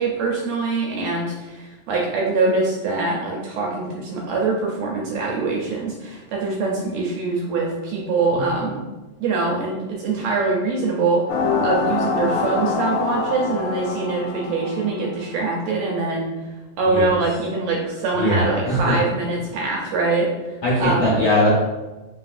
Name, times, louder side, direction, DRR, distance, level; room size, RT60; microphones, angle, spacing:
voice 1, 0.0-8.8 9.2-11.2 11.6-16.3 16.8-21.2, right 3 dB, 75° right, -2 dB, 1.6 m, -23 dB
sound 1, 11.3-15.2, left 4 dB, 90° left, 2.0 m, -25 dB
voice 2, 18.1-19.0 20.6-21.5, left 1 dB, 70° left, -8 dB, 1.2 m, -21 dB
4.1 x 3.9 x 2.4 m, 1.2 s
omnidirectional pair, 3.4 m